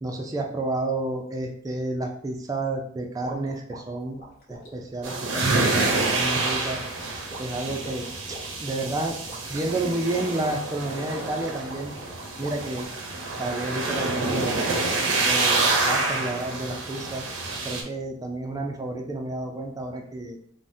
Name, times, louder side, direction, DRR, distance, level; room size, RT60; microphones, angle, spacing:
voice 1, 0.0-4.2 4.5-6.8 7.4-9.1 9.5-11.9 12.4-12.9 13.4-14.6 15.2-17.2 17.6-20.4, right 2 dB, 20° right, 2 dB, 0.3 m, -30 dB
sound 1, 3.2-13.1, right 1 dB, 55° left, 1.0 m, -44 dB
sound 2, 5.0-17.8, right 3 dB, 80° right, 0.6 m, -27 dB
3.4 x 2.1 x 2.6 m, 0.62 s
head